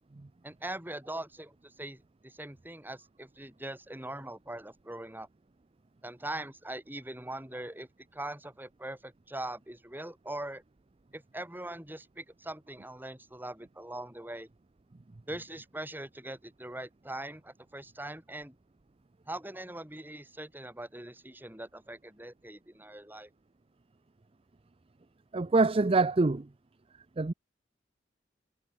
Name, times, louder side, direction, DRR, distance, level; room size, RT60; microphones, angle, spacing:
voice 1, 0.4-5.3 6.0-10.6 11.1-14.5 15.3-18.5 19.3-23.3, right 1 dB, 10° right, 5.0 m, -41 dB
voice 2, 25.3-26.5 27.2-27.3, right 3 dB, 30° right, 0.5 m, -25 dB
head